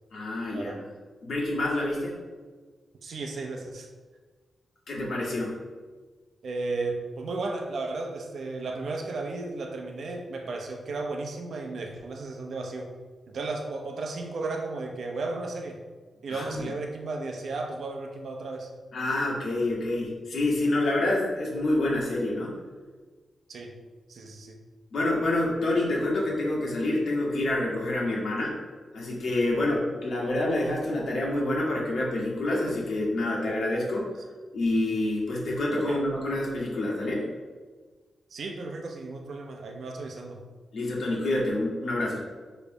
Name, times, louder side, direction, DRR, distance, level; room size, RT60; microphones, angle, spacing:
voice 1, 0.1-0.7 1.2-2.2 4.9-5.6 16.3-16.7 18.9-22.5 24.9-28.6 28.9-34.1 34.5-37.3 40.7-42.2, left 1 dB, 65° left, -4 dB, 2.1 m, -27 dB
voice 2, 3.0-3.9 6.4-12.9 13.3-15.8 16.2-18.7 23.5-23.7 24.1-24.6 29.6-29.8 35.9-36.0 38.3-40.5, right 3 dB, 60° right, 3 dB, 0.9 m, -34 dB
7.0 x 3.4 x 5.4 m, 1.4 s
wide cardioid pair, 150°, 0 cm